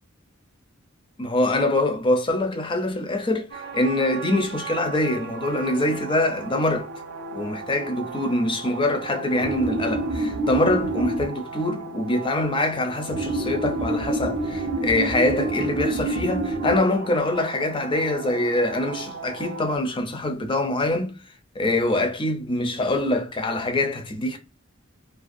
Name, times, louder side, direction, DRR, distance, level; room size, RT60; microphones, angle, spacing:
voice 1, 1.2-6.9 7.3-24.4, left 2 dB, 25° left, 0.5 m, -24 dB
sound 1, 3.5-19.8, right 2 dB, 55° right, 0.4 m, -30 dB
2.5 x 2.2 x 2.5 m
head